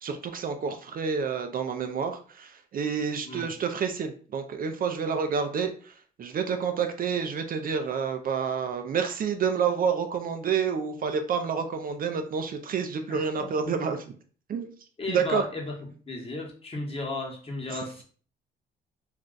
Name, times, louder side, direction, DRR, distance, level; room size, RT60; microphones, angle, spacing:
voice 1, 0.0-5.9 6.2-14.0 14.5-14.7 15.1-15.4 17.7-17.8, right 6 dB, 45° right, 7 dB, 0.4 m, -29 dB
voice 2, 13.1-13.7 15.0-15.7 16.1-18.0, left 2 dB, 30° left, 0 dB, 1.0 m, -35 dB
2.5 x 2.2 x 3.7 m, 0.43 s
cardioid pair, 90°, 20 cm